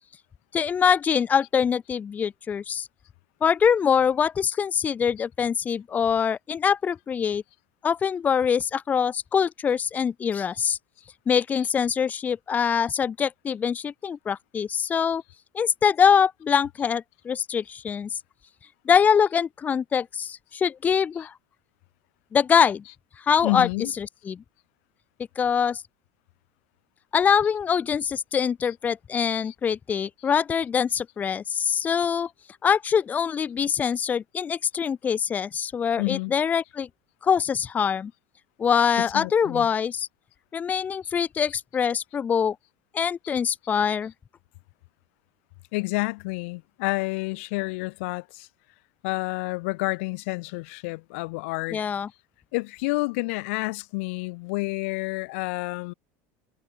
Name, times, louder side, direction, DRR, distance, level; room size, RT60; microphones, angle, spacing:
voice 1, 0.5-2.9 3.4-7.4 7.8-10.8 11.3-15.2 15.5-18.1 18.9-21.3 22.3-22.8 23.2-23.7 24.0-24.4 25.4-25.8 27.1-32.3 32.6-36.9 37.2-38.1 38.6-40.1 40.5-42.6 42.9-44.1 51.7-52.1, left 7 dB, 25° left, 0.9 m, -24 dB
voice 2, 23.4-23.9 29.4-29.5 36.0-36.3 39.0-39.7 45.7-48.5 49.0-51.8 52.5-55.9, left 26 dB, 80° left, 3.3 m, -29 dB
supercardioid pair, 140°, 7 cm